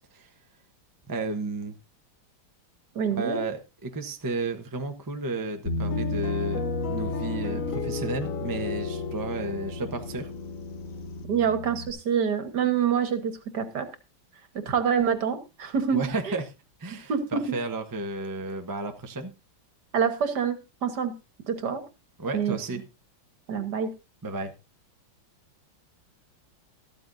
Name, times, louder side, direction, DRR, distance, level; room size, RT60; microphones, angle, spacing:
voice 1, 1.1-1.8 3.1-10.3 15.9-16.5 16.8-19.3 22.2-22.8 24.2-24.5, right 3 dB, 25° right, 0.4 m, -33 dB
voice 2, 2.9-3.4 11.3-13.8 14.6-16.1 17.1-17.4 19.9-20.6 20.8-21.1 21.5-21.8 22.3-22.8 23.5-23.9, right 7 dB, 55° right, 1.8 m, -26 dB
Bass guitar, 5.7-11.9, left 1 dB, 35° left, 2.7 m, -34 dB
sound 1, 5.9-11.3, left 7 dB, 55° left, 1.0 m, -35 dB
13.5 x 13.0 x 2.6 m
omnidirectional pair, 2.2 m